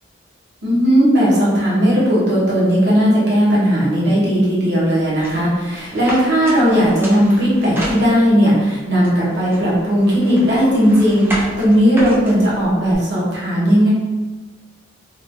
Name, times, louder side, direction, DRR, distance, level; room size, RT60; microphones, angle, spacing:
voice 1, 0.6-13.9, equal, 60° right, -7 dB, 1.0 m, -16 dB
sound 1, 5.2-8.5 9.0-12.9, equal, 10° right, 0.4 m, -32 dB
2.9 x 2.4 x 2.7 m, 1.3 s
head